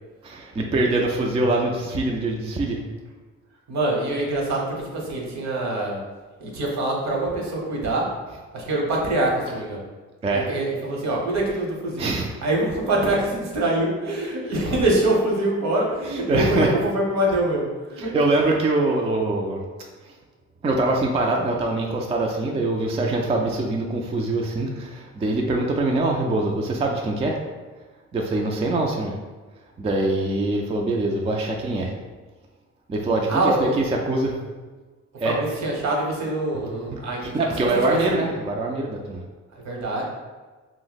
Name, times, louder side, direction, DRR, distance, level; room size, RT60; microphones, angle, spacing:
voice 1, 0.2-2.8 10.2-10.5 12.0-12.3 16.1-16.7 18.0-19.6 20.1-20.2 20.6-27.4 28.1-29.2 29.8-31.9 32.9-34.4 35.2-35.4 36.9-37.0 37.3-39.2, right 2 dB, 20° right, 0 dB, 0.3 m, -23 dB
voice 2, 3.7-6.0 6.4-8.1 8.5-9.8 10.3-12.1 12.4-18.1 33.3-33.8 35.2-38.3 39.5-40.0, right 1 dB, 60° right, -2 dB, 1.0 m, -24 dB
2.6 x 2.1 x 3.9 m, 1.3 s
cardioid pair, 90°, 30 cm